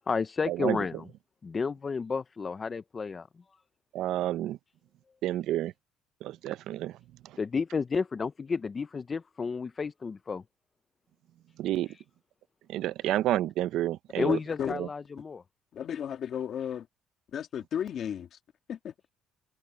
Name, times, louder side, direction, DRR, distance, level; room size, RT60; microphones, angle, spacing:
voice 1, 0.1-1.1 1.4-3.3 7.4-10.4 11.8-12.0 14.2-15.4, left 5 dB, 25° left, 0.5 m, -31 dB
voice 2, 3.9-4.6 5.2-5.7 6.2-6.9 11.6-11.9 12.7-14.4 14.8-14.9, right 13 dB, 70° right, 0.5 m, -29 dB
voice 3, 14.2-14.7 15.7-16.9 17.3-18.4 18.7-18.9, left 9 dB, 50° left, 2.2 m, -34 dB
cardioid pair, 145°, 0 cm